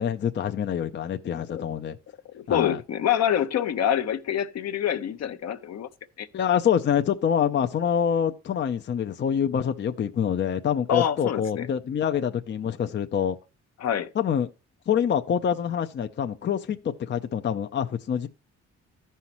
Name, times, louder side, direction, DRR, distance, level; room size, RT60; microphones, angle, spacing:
voice 1, 0.0-2.0 2.5-2.8 6.3-13.4 14.2-14.5 14.9-18.3, left 8 dB, 40° left, 0.5 m, -26 dB
voice 2, 2.3-5.9 6.2-6.3 10.9-11.7 13.8-14.1, left 10 dB, 60° left, 0.8 m, -26 dB
14.0 x 5.6 x 3.0 m
cardioid pair, 90°, 30 cm